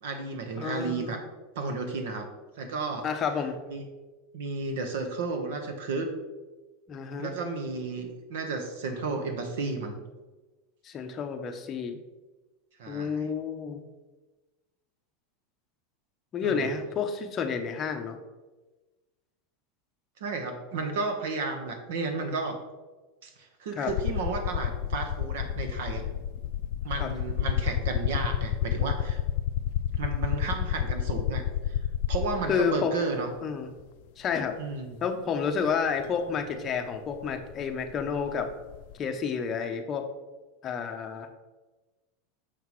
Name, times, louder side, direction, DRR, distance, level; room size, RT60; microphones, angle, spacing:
voice 1, 0.0-1.2 1.5-2.3 2.6-3.1 3.7-3.8 4.3-6.1 7.2-10.0 12.8-13.3 16.4-16.8 20.2-22.6 23.2-26.1 26.8-29.2 30.0-31.8 32.1-33.3 34.6-35.0, right 3 dB, 80° right, 6 dB, 1.1 m, -33 dB
voice 2, 0.6-1.2 3.0-3.6 6.9-7.3 10.8-12.0 12.9-13.8 16.3-18.2 23.8-23.9 27.0-27.1 32.5-33.0 33.4-33.7 34.2-34.5 35.0-38.5 39.0-40.1 40.6-41.3, left 6 dB, 25° left, 5 dB, 0.7 m, -30 dB
sound 1, 23.9-32.6 33.8-33.9 36.0-36.1 36.4-38.9, left 10 dB, 60° left, 0.4 m, -30 dB
6.6 x 5.6 x 3.1 m, 1.2 s
supercardioid pair, 150°, 0 cm